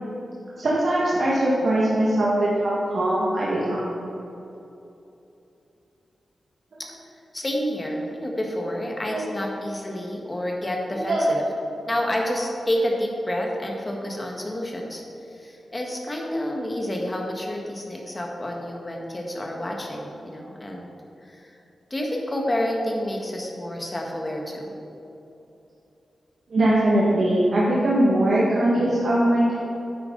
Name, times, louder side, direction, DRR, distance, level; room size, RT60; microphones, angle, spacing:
voice 1, 0.6-3.9 9.1-9.3 11.1-11.3 26.5-29.6, right 1 dB, 60° right, -7 dB, 1.7 m, -21 dB
voice 2, 7.3-11.4 11.9-15.0 15.3-20.9 21.2-21.6 21.9-24.7, left 1 dB, 20° left, 0 dB, 1.4 m, -29 dB
10.5 x 8.0 x 3.9 m, 2.9 s
wide cardioid pair, 125°, 0 cm